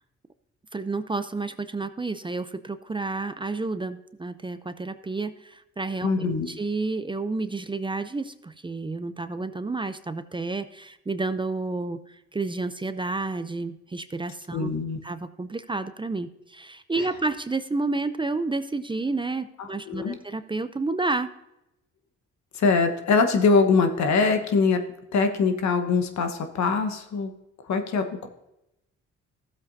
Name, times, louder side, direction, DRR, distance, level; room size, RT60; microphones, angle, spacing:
voice 1, 0.7-14.7 15.0-21.3, right 3 dB, 15° right, 11 dB, 0.5 m, -30 dB
voice 2, 6.0-6.5 14.5-15.0 19.6-20.1 22.5-24.8 25.1-27.3 27.7-28.3, left 4 dB, 70° left, 7 dB, 1.3 m, -23 dB
14.5 x 7.8 x 2.7 m, 0.88 s
cardioid pair, 75°, 29 cm